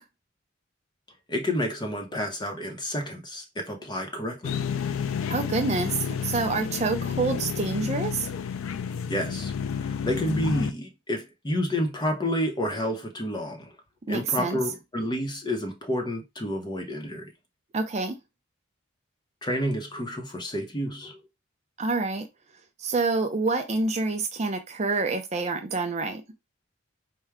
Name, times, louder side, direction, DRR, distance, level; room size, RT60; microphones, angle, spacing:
voice 1, 1.3-4.6 9.1-13.7 14.1-17.3 19.4-21.2, equal, 20° left, 0.8 m, -30 dB
sound 1, 4.4-10.7, left 7 dB, 85° left, 0.4 m, -30 dB
voice 2, 5.3-8.3 14.1-14.6 17.7-18.2 21.8-22.3 22.8-26.2, right 3 dB, 35° right, 0.5 m, -27 dB
4.5 x 2.2 x 3.5 m
head